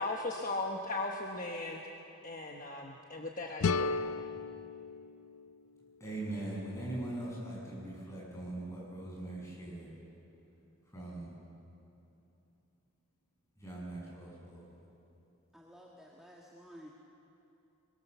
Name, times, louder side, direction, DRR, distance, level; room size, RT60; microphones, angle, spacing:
voice 1, 0.0-1.8 2.2-3.9, left 2 dB, 40° left, 1 dB, 1.2 m, -37 dB
sound 1, 3.6-6.5, left 4 dB, 85° left, 0.5 m, -35 dB
voice 2, 6.0-9.9 10.8-11.3 13.6-14.7, right 1 dB, 15° left, -5 dB, 7.7 m, -41 dB
voice 3, 15.5-16.9, equal, ahead, -4 dB, 1.6 m, -53 dB
23.5 x 22.5 x 6.9 m, 2.8 s
head